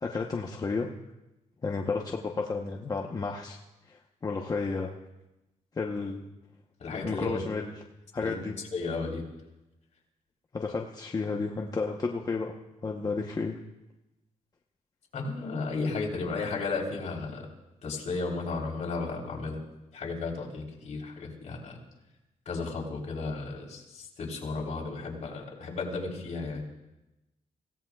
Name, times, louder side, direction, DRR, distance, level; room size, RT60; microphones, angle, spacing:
voice 1, 0.0-0.9 1.6-3.6 3.9-4.9 5.7-6.3 7.0-7.7 8.1-8.5 10.5-12.5 12.8-13.6, left 4 dB, 30° left, 1 dB, 1.0 m, -32 dB
voice 2, 6.8-7.4 8.2-8.4 8.7-9.2 15.1-17.5 17.8-19.6 19.9-21.8 22.5-26.6, left 3 dB, 60° left, -1 dB, 3.8 m, -34 dB
25.5 x 17.0 x 2.4 m, 0.97 s
cardioid pair, 115°, 14 cm